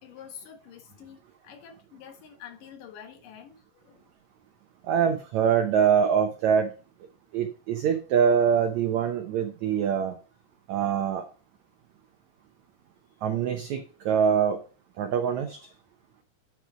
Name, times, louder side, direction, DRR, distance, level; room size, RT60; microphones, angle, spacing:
voice 1, 0.0-4.1, left 8 dB, 65° left, 2.7 m, -47 dB
voice 2, 4.9-6.7 7.3-10.1 10.7-11.2 13.2-14.6 15.0-15.6, right 7 dB, 80° right, 1.6 m, -24 dB
9.7 x 4.6 x 5.0 m
omnidirectional pair, 4.4 m